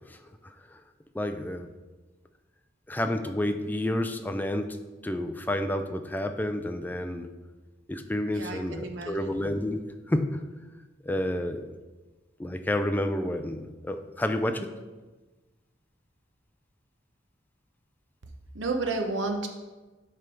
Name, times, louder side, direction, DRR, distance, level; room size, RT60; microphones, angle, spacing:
voice 1, 0.4-0.8 1.1-1.7 2.9-4.8 5.0-7.3 7.9-10.4 11.0-11.7 12.4-14.7, left 1 dB, 10° left, 7 dB, 0.4 m, -30 dB
voice 2, 8.3-9.3 18.5-19.5, right 3 dB, 80° right, 4 dB, 0.8 m, -31 dB
7.6 x 3.4 x 5.1 m, 1.2 s
head